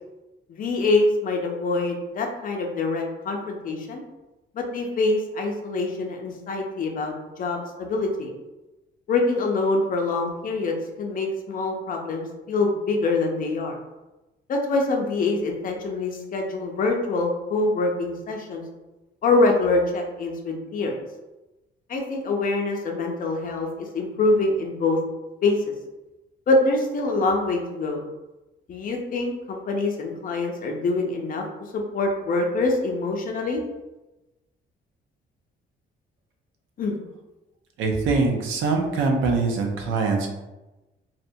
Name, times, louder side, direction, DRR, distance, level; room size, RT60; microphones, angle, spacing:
voice 1, 0.5-4.0 4.5-8.3 9.1-13.8 14.5-18.6 19.2-21.0 21.9-25.0 25.4-25.6 26.5-28.0 28.7-31.4 31.7-33.6 36.8-37.0, left 3 dB, 45° left, 2 dB, 0.5 m, -25 dB
voice 2, 37.8-40.3, right 3 dB, 85° right, 2 dB, 0.5 m, -23 dB
2.7 x 2.1 x 2.6 m, 1.0 s
cardioid pair, 90°, 20 cm